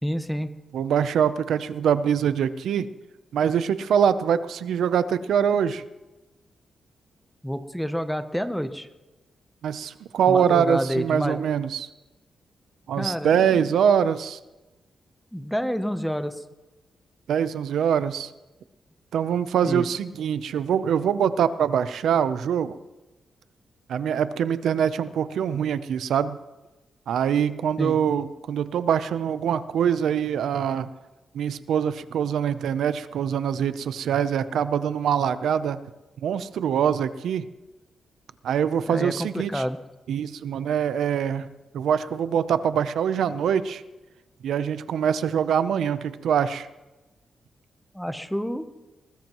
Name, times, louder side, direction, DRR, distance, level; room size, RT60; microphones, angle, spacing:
voice 1, 0.0-0.5 7.4-8.9 10.3-11.4 13.0-13.7 15.3-16.4 19.6-19.9 27.8-28.0 38.9-39.8 47.9-48.7, equal, ahead, 9 dB, 0.8 m, -28 dB
voice 2, 0.7-2.9 3.3-5.8 9.6-11.9 12.9-14.4 17.3-18.3 19.1-22.8 23.9-26.4 27.1-30.9 31.3-35.8 36.2-37.5 38.4-39.6 40.1-41.5 41.7-43.8 44.4-46.7, right 8 dB, 85° right, 13 dB, 0.6 m, -24 dB
21.0 x 20.0 x 3.1 m, 1.1 s
wide cardioid pair, 175°, 0 cm